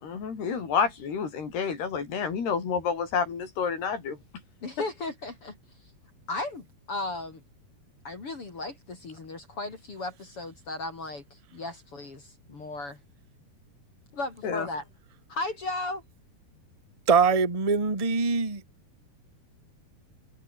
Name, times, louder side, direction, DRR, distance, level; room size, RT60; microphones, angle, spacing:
voice 1, 0.0-4.2 14.4-14.7, left 6 dB, 80° left, 7.2 m, -29 dB
voice 2, 4.6-5.6 6.3-7.4 8.0-13.0 14.2-14.8 15.3-16.0, left 2 dB, 35° left, 3.9 m, -35 dB
voice 3, 17.1-18.6, right 5 dB, 15° right, 1.6 m, -23 dB
open air
omnidirectional pair, 4.6 m